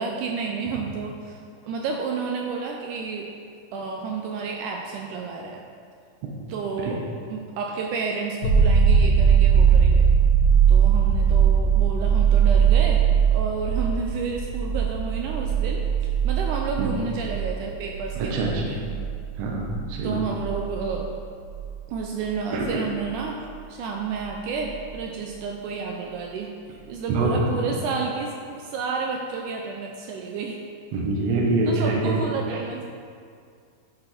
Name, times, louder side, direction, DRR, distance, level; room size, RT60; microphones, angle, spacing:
voice 1, 0.0-3.3 3.7-5.6 6.5-7.0 7.3-10.1 10.7-18.9 20.0-21.1 21.9-23.4 23.7-30.6 31.7-32.9, right 5 dB, 80° right, 1 dB, 1.9 m, -31 dB
sound 1, 8.4-21.9 24.7-24.8, right 7 dB, 65° left, 2.7 m, -20 dB
voice 2, 18.2-18.7 19.4-20.2 22.5-22.6 27.1-27.3 30.9-32.1 32.4-32.6, right 3 dB, 60° right, -2 dB, 1.8 m, -25 dB
10.5 x 5.1 x 4.2 m, 2.3 s
omnidirectional pair, 4.0 m